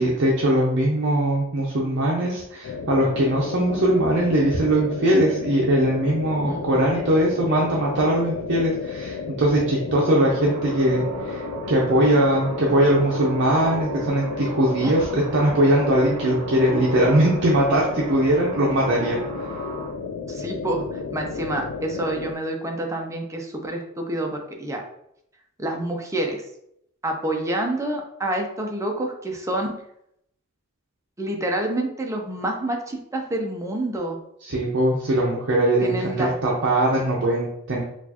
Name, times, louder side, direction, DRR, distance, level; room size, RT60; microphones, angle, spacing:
voice 1, 0.0-19.2 34.4-37.8, right 1 dB, 60° right, -3 dB, 0.6 m, -21 dB
sound 1, 2.6-22.3, left 5 dB, 60° left, 0.3 m, -33 dB
voice 2, 6.4-6.8 9.9-10.5 14.8-14.9 20.3-24.8 25.6-26.4 27.0-29.7 31.2-34.2 35.8-36.3, right 1 dB, 15° right, 2 dB, 0.5 m, -28 dB
sound 2, 10.1-19.9, right 5 dB, 35° right, 1.2 m, -36 dB
4.1 x 2.4 x 2.8 m, 0.75 s
head